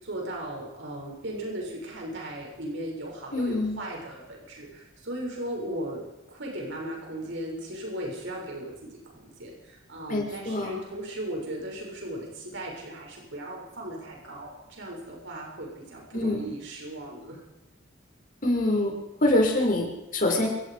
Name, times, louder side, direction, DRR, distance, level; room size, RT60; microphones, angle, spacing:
voice 1, 0.0-6.0 6.3-8.7 9.1-17.4, right 1 dB, 60° right, -1 dB, 7.2 m, -37 dB
voice 2, 3.3-3.8 10.1-10.8 16.1-16.5 18.4-18.9 19.2-20.5, left 1 dB, 40° left, 0 dB, 6.5 m, -25 dB
28.5 x 18.0 x 5.3 m, 0.98 s
head